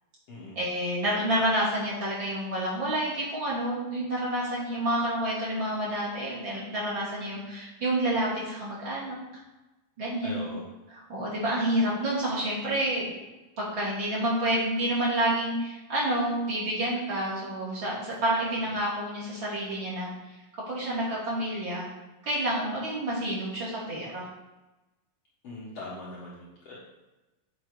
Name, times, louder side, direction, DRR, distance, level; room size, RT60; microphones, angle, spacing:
voice 1, 0.6-9.2 10.0-10.5 10.9-13.1 13.6-20.1 20.7-21.9 22.2-24.2, right 1 dB, 35° right, -8 dB, 3.5 m, -29 dB
voice 2, 10.2-10.6 25.4-26.8, left 2 dB, 55° left, -8 dB, 2.3 m, -41 dB
8.5 x 5.6 x 4.9 m, 1.1 s
omnidirectional pair, 3.9 m